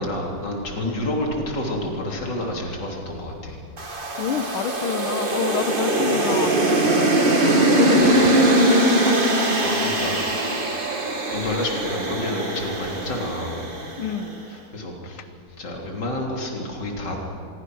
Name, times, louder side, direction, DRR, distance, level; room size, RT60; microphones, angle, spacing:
voice 1, 0.0-3.6 8.0-8.1 9.6-10.5 11.3-13.7 14.7-15.3 15.6-17.2, left 1 dB, 55° left, 0 dB, 3.9 m, -29 dB
sound 1, 3.8-14.1, right 1 dB, 25° right, 2.0 m, -21 dB
voice 2, 4.2-9.2 14.0-14.4, left 8 dB, 80° left, 11 dB, 1.8 m, -29 dB
25.5 x 22.5 x 6.3 m, 2.4 s
omnidirectional pair, 2.3 m